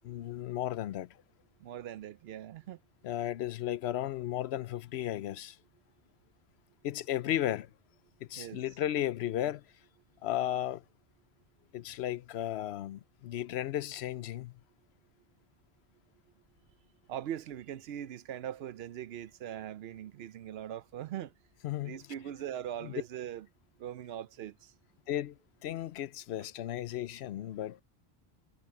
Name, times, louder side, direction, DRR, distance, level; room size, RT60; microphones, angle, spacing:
voice 1, 0.0-1.2 3.0-5.6 6.8-7.7 8.3-9.6 10.2-10.8 11.7-14.5 21.6-22.0 22.8-22.9 25.1-27.8, left 12 dB, 85° left, 0.9 m, -34 dB
voice 2, 1.6-2.8 8.4-8.6 17.1-21.3 21.8-23.5 23.8-24.7, right 11 dB, 75° right, 0.8 m, -41 dB
omnidirectional pair, 1.1 m